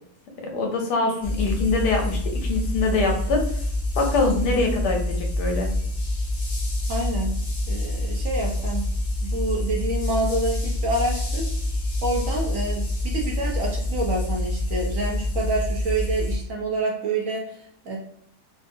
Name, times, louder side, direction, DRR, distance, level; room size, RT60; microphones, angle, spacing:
voice 1, 0.5-3.6 4.0-5.7, left 3 dB, 90° left, 2 dB, 1.4 m, -24 dB
sound 1, 1.2-16.4, left 1 dB, 40° left, 0.4 m, -26 dB
voice 2, 6.9-7.3 7.7-8.9 9.2-11.5 12.0-18.0, right 2 dB, 60° right, -1 dB, 1.1 m, -27 dB
3.6 x 2.5 x 2.6 m, 0.67 s
omnidirectional pair, 1.7 m